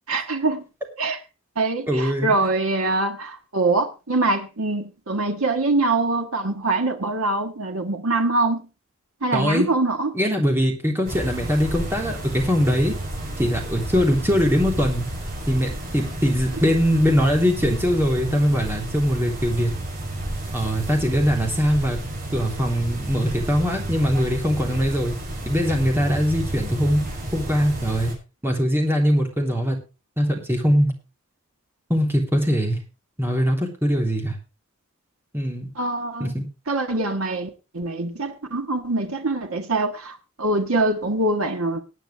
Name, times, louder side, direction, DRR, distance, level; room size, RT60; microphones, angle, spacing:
voice 1, 0.1-0.6 1.0-1.2 1.6-8.6 9.2-10.1 35.8-36.3 36.7-37.5 37.7-40.1 40.4-41.8, right 2 dB, 85° right, 1.6 m, -23 dB
voice 2, 1.9-2.5 9.3-9.7 10.1-13.0 13.4-15.1 15.5-19.7 20.5-22.0 22.3-25.1 25.4-28.1 28.4-29.8 30.2-30.9 31.9-32.8 33.2-34.3 35.3-35.7 36.2-36.5, equal, 10° right, 3.3 m, -22 dB
sound 1, 11.0-28.1, right 1 dB, 40° right, 5.9 m, -31 dB
19.5 x 9.1 x 3.3 m
head